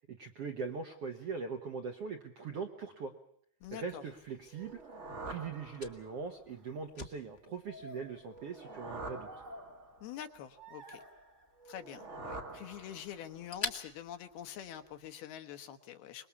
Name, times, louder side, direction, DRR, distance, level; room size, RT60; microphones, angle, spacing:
voice 1, 0.1-3.1 3.7-4.8 5.3-9.3, right 5 dB, 70° right, 4 dB, 1.4 m, -41 dB
voice 2, 3.6-4.0 10.0-11.0 11.7-16.3, left 10 dB, 80° left, 8 dB, 3.1 m, -46 dB
Fire, 3.6-15.1, left 3 dB, 60° left, 0.6 m, -50 dB
sound 1, 4.5-6.3 8.3-10.1 11.6-13.4, right 2 dB, 50° right, 0.8 m, -46 dB
sound 2, 6.5-6.8 7.6-10.3 10.6-11.5 12.0-12.9, left 1 dB, 35° right, 1.2 m, -53 dB
25.0 x 21.0 x 7.1 m, 0.66 s
omnidirectional pair, 4.5 m